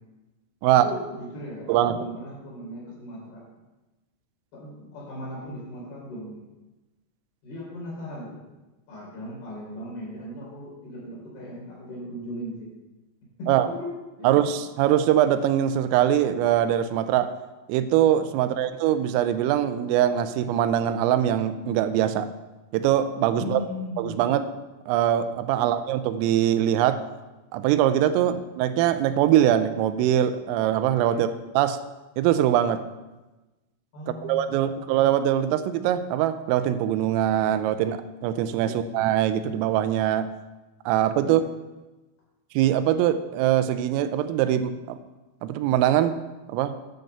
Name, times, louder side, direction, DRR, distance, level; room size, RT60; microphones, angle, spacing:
voice 1, 0.6-3.4 4.5-6.4 7.4-8.4 8.9-12.7 13.4-13.9 14.2-14.4 18.4-18.7 23.3-24.3 25.5-25.7 28.1-28.3 31.1-31.3 33.9-34.9 38.6-38.8 41.2-41.4, left 1 dB, 55° left, -4 dB, 5.1 m, -38 dB
voice 2, 1.7-2.0 13.5-13.7 14.2-17.3 17.7-22.3 22.7-23.6 24.0-24.4 24.9-27.0 27.5-31.3 31.6-31.8 32.2-32.8 34.1-40.3 40.9-41.4 42.5-45.0 45.4-46.2 46.5-46.8, right 11 dB, 85° right, 11 dB, 3.3 m, -22 dB
10.5 x 6.5 x 6.7 m, 1.1 s
omnidirectional pair, 5.8 m